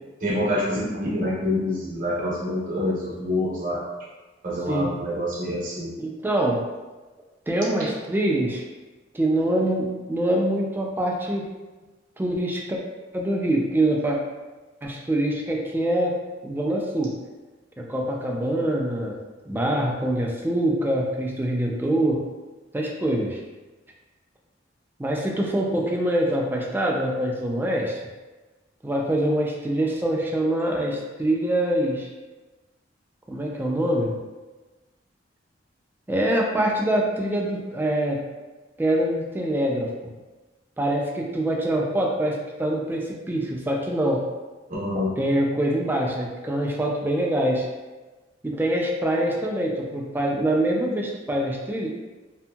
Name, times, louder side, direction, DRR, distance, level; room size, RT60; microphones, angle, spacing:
voice 1, 0.2-3.8 4.4-5.9 44.7-45.1, left 1 dB, 45° right, -6 dB, 0.8 m, -26 dB
voice 2, 6.0-6.6 7.5-8.6 9.1-11.4 12.2-12.8 13.1-14.2 14.8-16.2 16.4-17.1 17.8-19.2 19.5-22.2 22.7-23.4 25.0-28.0 28.8-32.1 33.3-34.1 36.1-38.2 38.8-39.9 40.8-44.2 45.2-47.7 48.4-51.9, right 1 dB, 10° right, -1 dB, 0.3 m, -24 dB
2.7 x 2.6 x 2.2 m, 1.2 s
head